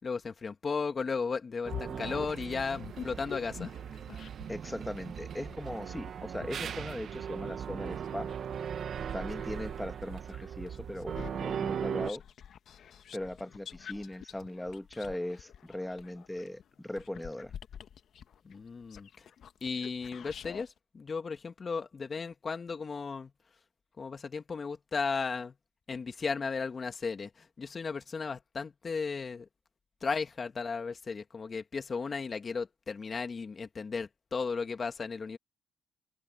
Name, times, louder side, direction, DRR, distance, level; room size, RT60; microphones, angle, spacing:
voice 1, 0.0-3.7 18.4-19.3 19.6-23.3 24.0-25.5 25.9-29.5 30.0-35.4, left 5 dB, 40° left, 2.3 m, -35 dB
sound 1, 1.6-4.6 5.2-9.5 10.0-20.7, left 8 dB, 65° left, 1.5 m, -47 dB
sound 2, 1.6-12.1, right 8 dB, 60° right, 1.4 m, -38 dB
voice 2, 4.5-8.3 9.1-12.2 13.1-17.5, left 1 dB, 10° left, 1.6 m, -39 dB
cardioid pair, 90°, 0 cm